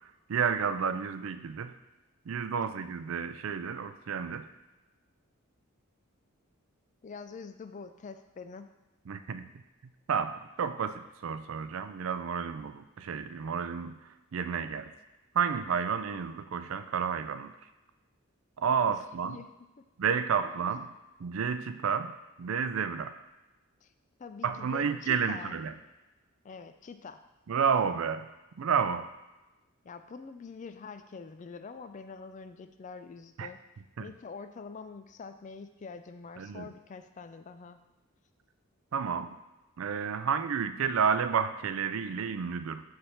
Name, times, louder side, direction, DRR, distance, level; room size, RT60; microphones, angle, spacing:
voice 1, 0.3-1.7 2.3-4.5 9.1-9.5 10.1-14.9 15.3-17.5 18.6-19.4 20.0-20.9 21.2-22.1 22.4-23.1 24.4-25.7 27.5-28.3 28.6-29.1 33.4-33.5 34.0-34.1 36.4-36.7 38.9-39.4 39.8-42.8, right 6 dB, 70° right, 11 dB, 0.4 m, -31 dB
voice 2, 7.0-8.7 19.2-19.5 20.4-20.5 23.8-23.9 24.2-25.6 26.4-27.2 29.8-33.6 34.0-37.8, left 5 dB, 35° left, 10 dB, 0.3 m, -45 dB
7.0 x 3.4 x 5.6 m, 1.0 s
head